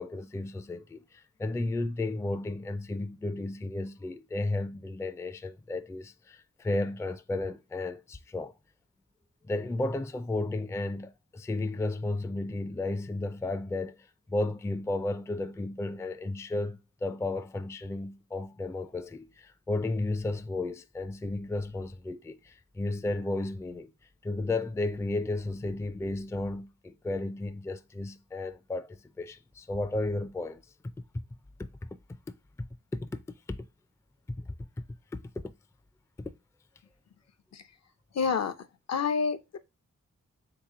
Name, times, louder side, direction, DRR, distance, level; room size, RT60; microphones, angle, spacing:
voice 1, 0.0-8.5 9.5-23.9 24.2-30.9 31.6-32.7 32.9-33.7 34.3-34.5 35.1-35.5 36.2-36.3, left 2 dB, 10° left, 0.3 m, -33 dB
voice 2, 38.1-38.5 38.9-39.6, left 5 dB, 60° left, 0.6 m, -28 dB
3.6 x 2.9 x 4.8 m
cardioid pair, 60°, 29 cm